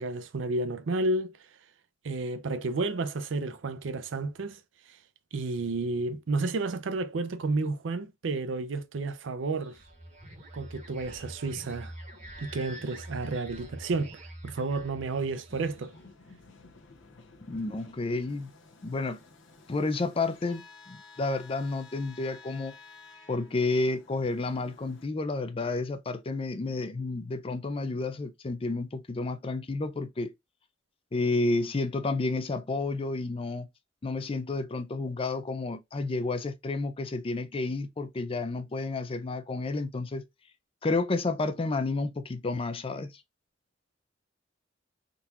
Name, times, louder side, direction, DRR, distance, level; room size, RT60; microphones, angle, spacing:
voice 1, 0.0-1.4 2.0-4.6 4.9-5.0 5.3-9.8 10.5-11.9 12.4-14.1 14.4-15.9, right 3 dB, 85° right, 0.5 m, -31 dB
sound 1, 9.5-16.1, right 1 dB, 35° right, 1.1 m, -46 dB
sound 2, 15.5-25.1, left 4 dB, 75° left, 0.7 m, -54 dB
voice 2, 17.4-18.5 18.8-19.2 19.7-22.8 23.3-30.3 31.1-33.7 34.0-40.2 40.8-43.1, left 3 dB, 30° left, 0.4 m, -31 dB
3.8 x 2.4 x 2.7 m
head